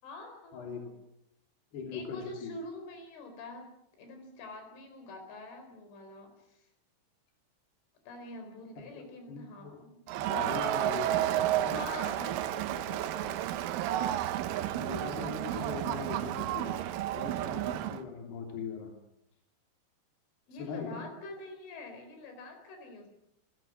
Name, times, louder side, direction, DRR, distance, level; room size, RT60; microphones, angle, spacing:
voice 1, 0.0-0.9 1.9-3.7 4.0-6.7 8.1-10.0 11.7-13.6 20.5-23.1, left 2 dB, 80° left, 5 dB, 6.7 m, -46 dB
voice 2, 1.7-2.5 9.3-9.8 10.2-11.8 14.8-16.8 17.1-18.9 20.6-21.0, left 5 dB, 60° left, 1 dB, 5.0 m, -40 dB
Crowd, 10.1-18.0, right 13 dB, 85° right, 3.5 m, -31 dB
29.0 x 17.0 x 6.2 m, 0.80 s
omnidirectional pair, 5.5 m